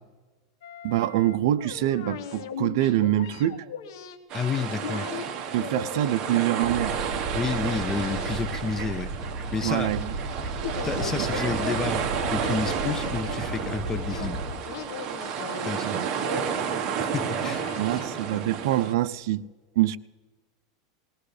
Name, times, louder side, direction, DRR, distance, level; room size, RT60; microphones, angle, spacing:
sound 1, 0.6-4.2 4.8-5.3 5.6-7.1 7.4-8.4 8.7-9.0 10.5-11.8 12.1-14.3 14.7-15.7 16.2-16.8 17.3-18.6 18.9-19.0, left 8 dB, 75° left, 1.3 m, -38 dB
voice 1, 0.8-3.7 5.5-7.0 9.6-10.1 11.2-11.3 15.8-16.1 17.8-19.4 19.8-20.0, right 13 dB, 65° right, 0.5 m, -25 dB
voice 2, 4.3-5.1 7.3-9.1 9.5-9.9 10.8-14.5 15.6-16.0 17.0-17.7 18.4-18.5, left 5 dB, 20° left, 0.5 m, -30 dB
sound 2, 4.3-18.9, right 7 dB, 35° right, 1.3 m, -31 dB
sound 3, 6.6-14.5, right 2 dB, 15° right, 2.4 m, -34 dB
19.0 x 18.5 x 3.3 m
supercardioid pair, 140°, 2 cm